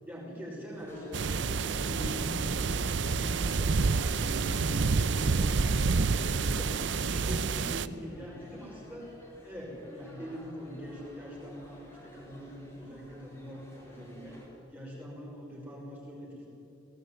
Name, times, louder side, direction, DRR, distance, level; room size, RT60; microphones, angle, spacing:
voice 1, 0.1-6.7 7.0-9.1 9.4-14.4 14.7-16.5, equal, 10° right, -4 dB, 5.4 m, -42 dB
sound 1, 0.7-14.5, equal, 15° left, 4.9 m, -52 dB
sound 2, 1.1-7.9, right 4 dB, 65° right, 0.6 m, -28 dB
18.0 x 17.5 x 9.5 m, 2.8 s
head